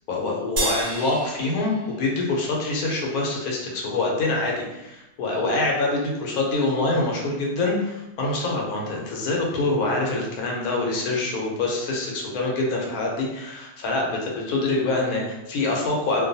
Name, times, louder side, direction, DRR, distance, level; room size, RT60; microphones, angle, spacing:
voice 1, 0.1-16.3, left 2 dB, 70° left, -1 dB, 1.1 m, -25 dB
sound 1, 0.6-3.1, right 2 dB, 80° right, 0.5 m, -31 dB
2.6 x 2.3 x 2.6 m, 0.95 s
omnidirectional pair, 1.8 m